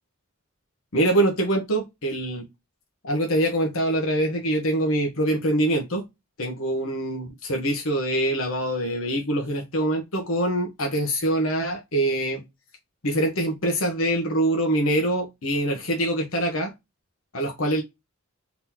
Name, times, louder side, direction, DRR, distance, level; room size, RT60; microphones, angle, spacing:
voice 1, 0.9-2.4 3.0-6.0 6.4-12.4 13.0-16.7 17.3-17.8, right 1 dB, 80° left, 1.1 m, -24 dB
4.1 x 2.9 x 3.6 m
head